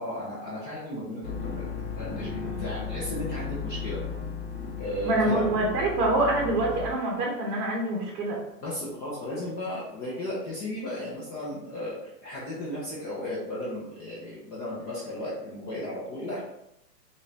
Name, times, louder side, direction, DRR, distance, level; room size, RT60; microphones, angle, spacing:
voice 1, 0.0-1.6 2.0-4.0 4.8-5.4 8.6-16.4, left 1 dB, 20° left, -7 dB, 0.7 m, -35 dB
sound 1, 1.2-6.9, left 6 dB, 40° left, 1.1 m, -35 dB
voice 2, 5.0-8.4, right 2 dB, 30° right, -2 dB, 1.2 m, -26 dB
4.0 x 2.7 x 3.3 m, 0.82 s
hypercardioid pair, 145°, 49 cm